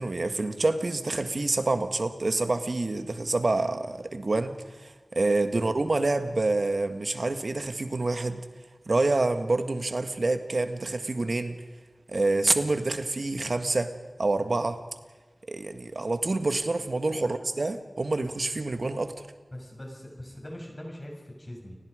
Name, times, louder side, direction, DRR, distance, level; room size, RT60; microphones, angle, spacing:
voice 1, 0.0-8.4 8.9-11.6 12.1-14.8 15.5-19.1, right 2 dB, 70° right, 8 dB, 1.7 m, -27 dB
voice 2, 19.5-21.8, left 1 dB, 35° left, 0 dB, 7.1 m, -42 dB
29.5 x 19.5 x 5.1 m, 1.3 s
wide cardioid pair, 50°, 0 cm